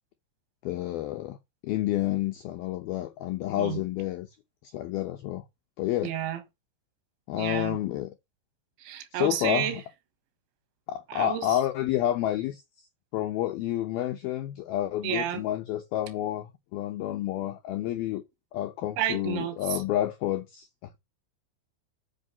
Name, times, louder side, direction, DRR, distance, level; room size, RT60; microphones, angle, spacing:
voice 1, 0.6-1.4 1.6-4.3 4.6-5.4 5.8-6.1 7.3-8.1 9.1-9.8 10.9-12.6 13.1-18.2 18.5-21.0, left 13 dB, 80° left, 2.2 m, -29 dB
voice 2, 6.0-6.4 7.3-7.8 8.8-9.8 11.1-11.6 15.0-15.4 19.0-19.8, right 11 dB, 75° right, 3.6 m, -31 dB
8.3 x 5.8 x 6.9 m
omnidirectional pair, 5.6 m